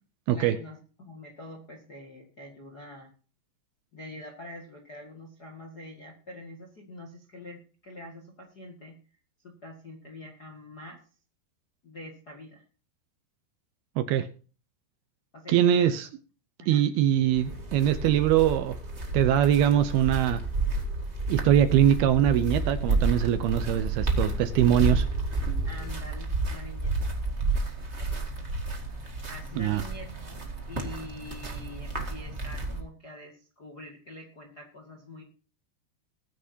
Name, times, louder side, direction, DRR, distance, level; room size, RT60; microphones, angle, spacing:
voice 1, 0.3-3.1 3.9-8.9 9.4-11.0 11.8-12.6 15.3-15.9 16.6-16.8 21.8-22.0 24.1-24.4 24.7-25.0 25.6-27.1 27.7-28.4 29.3-30.4 30.6-35.2, left 1 dB, 40° left, 1.3 m, -45 dB
voice 2, 14.0-14.3 15.5-16.1 16.7-18.8 19.1-20.4 21.3-25.0 29.6-29.8, right 10 dB, 75° right, 2.5 m, -22 dB
sound 1, 17.1-25.9, left 1 dB, 10° right, 4.8 m, -46 dB
sound 2, 17.3-32.8, right 3 dB, 55° right, 0.7 m, -31 dB
20.5 x 9.8 x 2.8 m
omnidirectional pair, 5.0 m